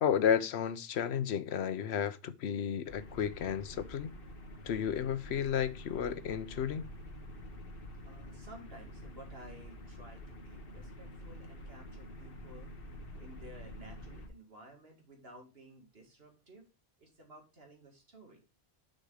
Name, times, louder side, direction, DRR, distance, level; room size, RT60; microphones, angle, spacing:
voice 1, 0.0-4.1 4.6-6.9, left 8 dB, 75° left, 1.0 m, -32 dB
sound 1, 2.9-14.3, equal, 60° left, 1.5 m, -48 dB
voice 2, 8.0-12.7 13.2-16.6 17.0-18.4, right 1 dB, 65° right, 2.4 m, -54 dB
6.2 x 5.2 x 4.8 m
omnidirectional pair, 1.1 m